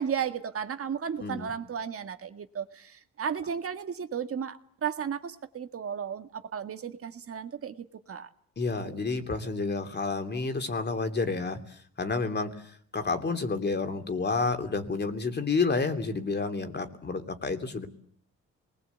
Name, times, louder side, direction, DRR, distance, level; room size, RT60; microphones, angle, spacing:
voice 1, 0.0-8.3 8.8-9.0, right 7 dB, 50° right, 8 dB, 1.9 m, -34 dB
voice 2, 1.2-1.5 8.6-17.9, left 4 dB, 35° left, 7 dB, 3.1 m, -30 dB
27.5 x 20.5 x 8.3 m, 0.62 s
cardioid pair, 90°, 30 cm